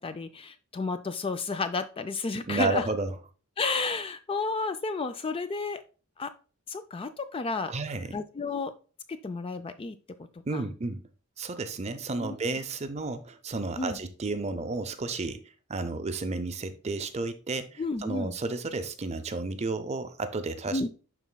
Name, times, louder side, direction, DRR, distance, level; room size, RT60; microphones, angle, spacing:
voice 1, 0.0-2.9 3.6-5.8 6.2-6.3 6.7-7.7 8.1-8.7 9.1-10.7 12.2-12.4 13.8-14.0 17.8-18.3 20.7-20.9, left 3 dB, 25° left, 0.3 m, -32 dB
voice 2, 2.5-3.1 7.7-8.1 10.5-11.0 11.4-15.4 15.7-20.9, right 3 dB, 30° right, 0.5 m, -32 dB
11.0 x 4.1 x 2.2 m
head